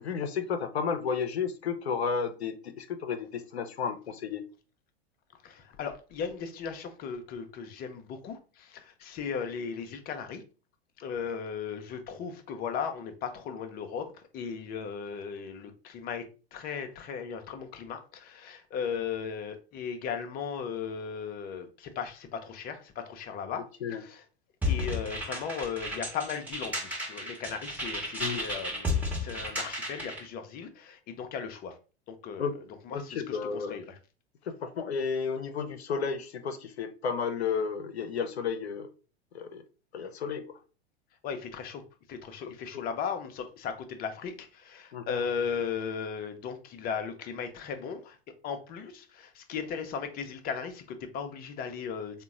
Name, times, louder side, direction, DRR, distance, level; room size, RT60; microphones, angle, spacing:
voice 1, 0.0-4.4 23.8-24.0 28.2-28.4 32.4-32.6 32.9-33.8 34.5-38.9 39.3-39.6 39.9-40.6 42.7-42.9 44.9-45.2, left 6 dB, 80° left, 0.5 m, -32 dB
voice 2, 5.4-10.4 11.0-16.3 16.5-24.2 24.7-31.8 32.1-32.5 32.9-34.0 41.2-41.8 42.1-48.2 48.4-52.2, left 6 dB, 30° left, 0.5 m, -37 dB
sound 1, 24.6-30.2, left 2 dB, 5° right, 1.0 m, -33 dB
3.7 x 2.1 x 3.5 m
figure-of-eight pair, 90°, 32 cm